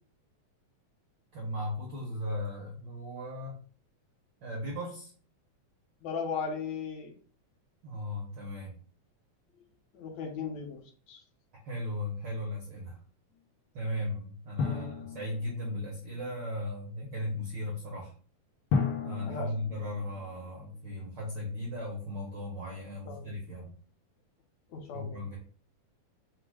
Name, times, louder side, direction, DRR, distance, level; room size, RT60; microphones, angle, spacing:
voice 1, 1.3-3.6 4.4-5.1 7.8-8.7 11.6-13.0 13.7-18.1 19.0-23.7 24.9-25.4, left 1 dB, 70° right, -2 dB, 1.0 m, -37 dB
voice 2, 6.0-7.1 9.9-10.8 11.1-11.2 14.6-14.9 19.3-19.5 23.1-23.3 24.7-25.2, left 5 dB, 75° left, 2 dB, 2.1 m, -37 dB
Drum, 14.6-16.1 18.7-20.9, left 5 dB, 90° left, 0.9 m, -34 dB
4.9 x 2.1 x 4.7 m, 0.43 s
omnidirectional pair, 3.3 m